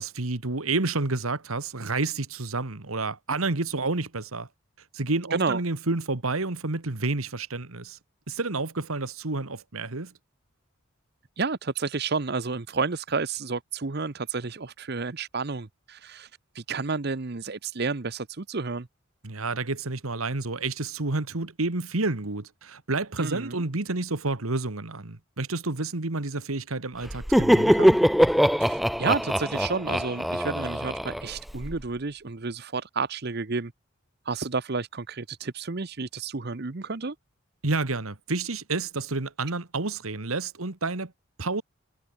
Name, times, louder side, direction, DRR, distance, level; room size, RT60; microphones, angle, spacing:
voice 1, 0.0-4.5 4.9-8.0 8.3-10.1 19.2-28.0 37.6-41.1 41.4-41.6, right 3 dB, 85° right, 1.7 m, -29 dB
voice 2, 11.4-16.3 16.5-18.9 23.2-23.6 28.6-33.7 34.2-37.1, right 4 dB, 50° right, 0.9 m, -30 dB
Laughter, 27.1-31.8, equal, ahead, 0.7 m, -22 dB
head